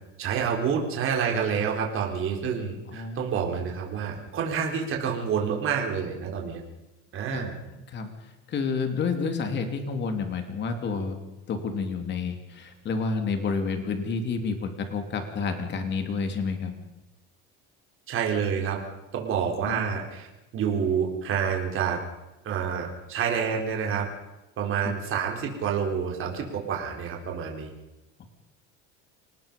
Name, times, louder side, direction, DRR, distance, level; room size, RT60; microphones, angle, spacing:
voice 1, 0.2-6.6 7.1-7.5 18.1-18.8 19.1-20.3 20.5-22.0 22.4-24.1 24.6-27.7, right 7 dB, 45° right, 1 dB, 4.3 m, -28 dB
voice 2, 2.9-3.3 7.3-8.1 8.5-11.2 11.5-16.7 19.7-19.8 24.8-24.9 28.2-28.3, left 4 dB, 35° left, 6 dB, 3.1 m, -30 dB
26.5 x 18.5 x 5.4 m, 1.0 s
cardioid pair, 140°, 30 cm